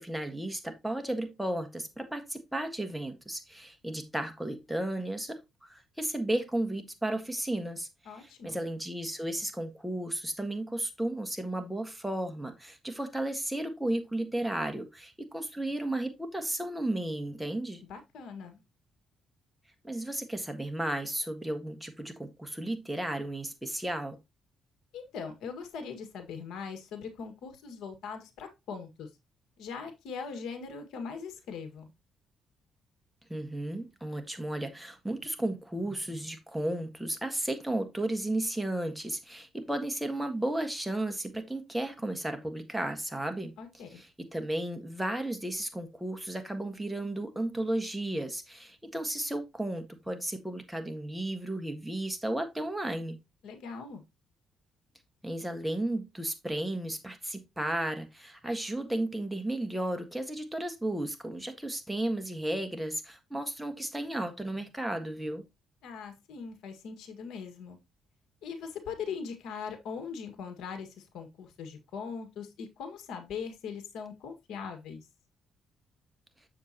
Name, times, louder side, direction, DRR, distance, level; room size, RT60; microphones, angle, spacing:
voice 1, 0.0-7.9 8.1-17.8 19.8-24.2 33.3-43.5 43.9-53.2 55.2-65.4, right 1 dB, 5° right, 1.6 m, -34 dB
voice 2, 8.1-8.6 17.9-18.6 24.9-29.1 29.6-31.9 43.6-44.0 53.4-54.0 65.8-67.8 68.4-75.1, left 6 dB, 85° left, 1.8 m, -41 dB
7.4 x 6.8 x 2.9 m
cardioid pair, 90°, 0 cm